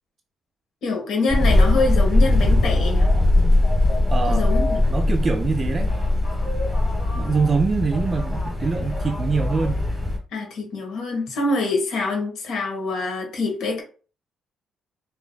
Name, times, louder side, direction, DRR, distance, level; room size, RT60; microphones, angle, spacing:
voice 1, 0.8-3.1 4.3-4.8 10.3-13.8, left 3 dB, 75° left, 1.2 m, -25 dB
sound 1, 1.3-10.2, left 2 dB, 5° left, 1.5 m, -20 dB
voice 2, 4.1-4.4 4.9-5.9 7.1-9.8, right 4 dB, 35° right, 0.3 m, -24 dB
4.6 x 2.8 x 2.2 m
cardioid pair, 90°, 0 cm